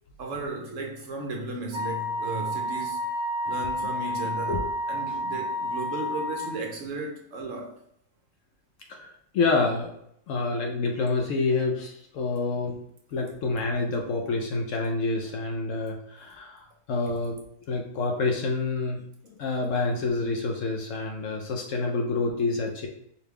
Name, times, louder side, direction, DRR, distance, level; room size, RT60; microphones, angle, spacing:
voice 1, 0.2-3.1 3.5-4.6 4.9-7.7, right 2 dB, 65° right, 1 dB, 0.9 m, -35 dB
Wind instrument woodwind instrument, 1.7-6.6, equal, 40° right, 0.9 m, -30 dB
voice 2, 8.9-9.9 10.3-12.8 13.1-17.4 17.7-22.9, left 3 dB, 70° left, 2 dB, 0.8 m, -28 dB
4.6 x 2.2 x 3.3 m, 0.73 s
omnidirectional pair, 1.6 m